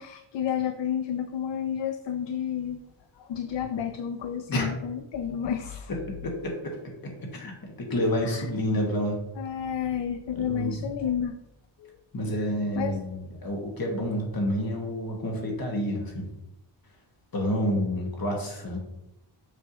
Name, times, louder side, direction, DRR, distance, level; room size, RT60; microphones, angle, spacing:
voice 1, 0.0-2.8 3.3-5.9 8.2-8.3 9.4-11.4 11.8-11.9 12.8-13.0, left 9 dB, 65° left, 9 dB, 0.5 m, -30 dB
voice 2, 7.8-9.2 10.4-10.9 12.1-16.3 17.3-18.8, equal, 45° left, 0 dB, 1.8 m, -28 dB
7.1 x 5.5 x 3.0 m, 0.87 s
wide cardioid pair, 125°, 48 cm